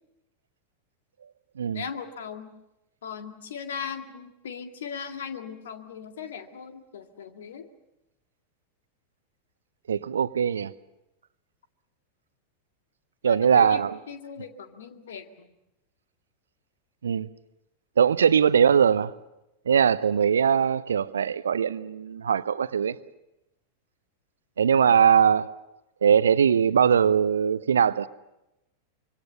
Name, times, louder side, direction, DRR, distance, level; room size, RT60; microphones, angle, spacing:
voice 1, 1.7-2.5 3.0-7.6 13.2-13.8 14.1-15.5, left 7 dB, 60° left, 2.1 m, -38 dB
voice 2, 9.9-10.7 13.2-14.0 17.0-17.3 18.0-19.1 19.7-23.0 24.6-25.5 26.0-28.1, right 7 dB, 70° right, 0.8 m, -21 dB
25.5 x 24.0 x 6.8 m
figure-of-eight pair, 90°, 0 cm